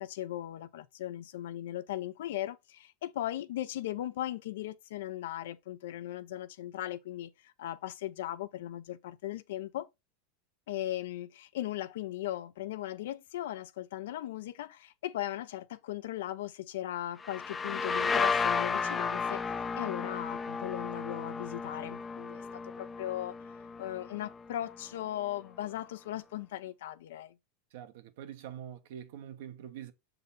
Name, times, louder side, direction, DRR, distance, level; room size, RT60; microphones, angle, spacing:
voice 1, 0.0-9.9 10.7-19.4 19.8-23.4 23.8-27.3, left 13 dB, 80° left, 0.7 m, -38 dB
sound 1, 17.2-24.8, left 5 dB, 20° left, 0.5 m, -33 dB
voice 2, 27.7-29.9, right 10 dB, 70° right, 1.1 m, -45 dB
6.8 x 4.0 x 4.0 m
supercardioid pair, 130°, 0 cm